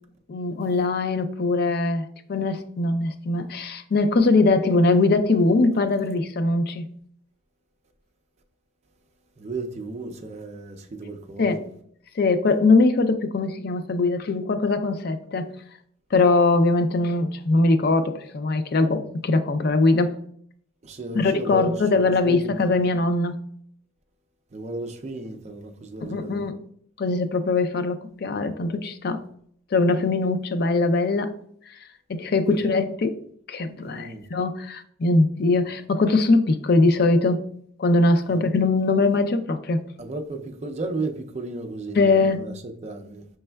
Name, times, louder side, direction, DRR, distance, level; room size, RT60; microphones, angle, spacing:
voice 1, 0.3-6.9 11.4-11.6 12.1-15.5 16.1-20.2 21.2-23.4 26.0-26.6 27.0-29.2 29.7-31.4 31.7-31.8 32.1-33.2 33.5-37.5 37.8-39.8 42.0-42.5, left 3 dB, 50° left, 0.4 m, -21 dB
voice 2, 9.4-11.6 20.8-22.7 24.5-26.4 32.5-32.6 33.8-34.3 38.3-38.5 40.0-43.3, right 2 dB, 35° right, 0.4 m, -34 dB
5.2 x 3.2 x 2.2 m
head